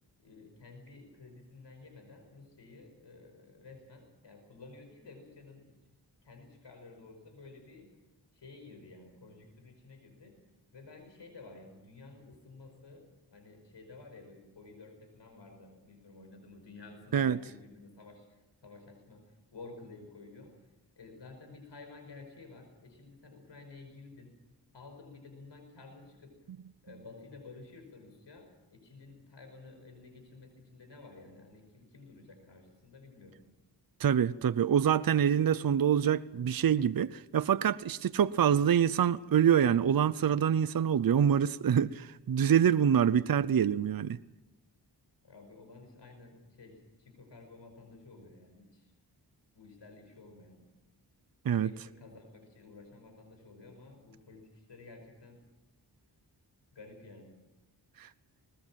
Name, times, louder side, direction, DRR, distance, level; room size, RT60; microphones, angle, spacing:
voice 1, 0.2-5.6 6.2-7.9 8.3-10.4 10.7-20.5 21.0-24.3 24.7-26.3 26.8-33.4 45.2-48.9 49.5-50.6 51.5-55.4 56.7-57.4, left 3 dB, 90° left, 5 dB, 5.3 m, -52 dB
voice 2, 34.0-44.2 51.5-51.7 58.0-58.1, right 8 dB, 55° right, 15 dB, 0.6 m, -26 dB
20.5 x 20.0 x 7.5 m, 1.0 s
wide cardioid pair, 65°, 41 cm